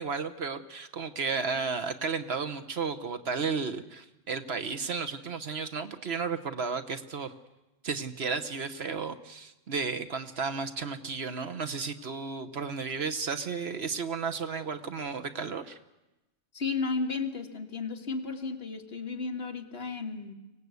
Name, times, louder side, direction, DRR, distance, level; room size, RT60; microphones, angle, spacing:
voice 1, 0.0-7.3 7.8-15.8, right 5 dB, 55° right, 9 dB, 1.2 m, -33 dB
voice 2, 16.5-20.3, left 4 dB, 50° left, 4 dB, 1.8 m, -33 dB
24.5 x 17.5 x 8.2 m, 1.0 s
omnidirectional pair, 1.3 m